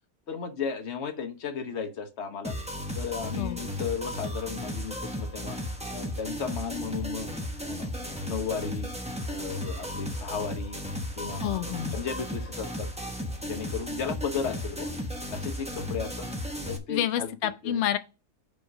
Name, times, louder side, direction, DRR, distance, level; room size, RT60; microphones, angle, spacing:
voice 1, 0.3-2.5 2.9-5.6 5.9-7.3 7.7-8.9 9.3-10.8 11.2-12.9 13.3-14.9 15.3-16.3 16.6-17.3 17.6-17.8, left 6 dB, 50° left, 1.1 m, -35 dB
sound 1, 2.4-16.8, left 1 dB, 5° right, 0.7 m, -35 dB
voice 2, 11.4-12.0 16.9-18.0, left 11 dB, 85° left, 0.6 m, -29 dB
5.3 x 4.6 x 6.2 m
omnidirectional pair, 1.8 m